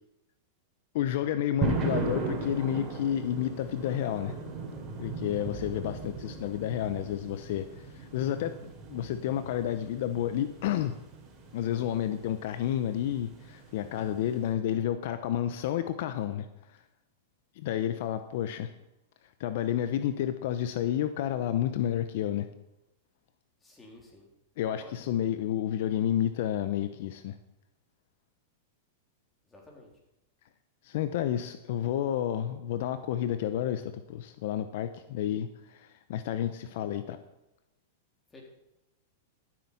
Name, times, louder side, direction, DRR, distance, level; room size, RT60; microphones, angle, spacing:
voice 1, 0.9-4.4 5.0-8.6 8.9-11.0 11.5-16.5 17.6-18.7 19.4-22.5 24.6-27.3 30.8-37.2, left 10 dB, 65° left, 11 dB, 0.7 m, -30 dB
sound 1, 1.6-14.5, right 3 dB, 30° right, 3.3 m, -37 dB
voice 2, 23.6-24.2 24.7-24.9 29.5-29.9 38.3-38.4, left 1 dB, 15° left, -1 dB, 3.7 m, -51 dB
13.5 x 7.7 x 5.7 m, 0.94 s
hypercardioid pair, 125°, 0 cm